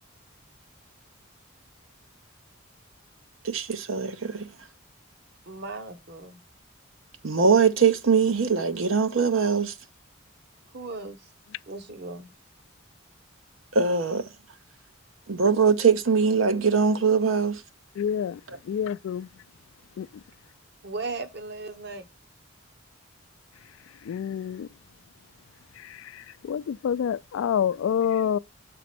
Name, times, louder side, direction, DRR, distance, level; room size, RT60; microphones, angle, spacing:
voice 1, 3.4-4.5 7.2-9.7 13.7-14.3 15.3-17.6 18.5-18.6, right 5 dB, 85° right, 0.8 m, -22 dB
voice 2, 5.5-6.4 10.7-11.3 11.7-12.3 20.8-22.1, right 3 dB, 55° right, 1.1 m, -37 dB
voice 3, 18.0-18.4 18.7-19.3 20.0-20.1 24.1-24.7 26.5-28.4, left 8 dB, 85° left, 0.3 m, -27 dB
6.9 x 4.2 x 5.9 m
head